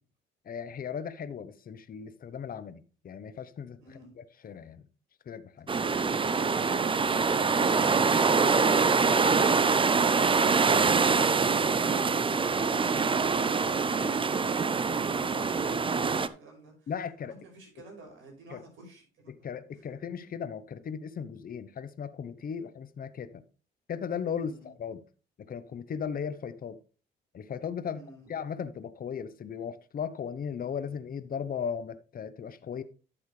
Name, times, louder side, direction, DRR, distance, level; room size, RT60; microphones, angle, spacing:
voice 1, 0.5-3.8 4.2-4.8 5.3-5.7 14.0-14.1 16.9-17.3 18.5-18.6 19.3-23.3 23.9-25.0 25.5-26.8 27.3-28.0 28.3-32.8, left 7 dB, 45° left, 0.9 m, -37 dB
voice 2, 3.8-4.2 17.3-20.0 24.3-24.7 27.9-28.3, right 3 dB, 85° right, 6.0 m, -51 dB
sound 1, 5.7-16.3, right 5 dB, 25° right, 0.6 m, -24 dB
12.0 x 7.1 x 3.3 m
cardioid pair, 90°, 20 cm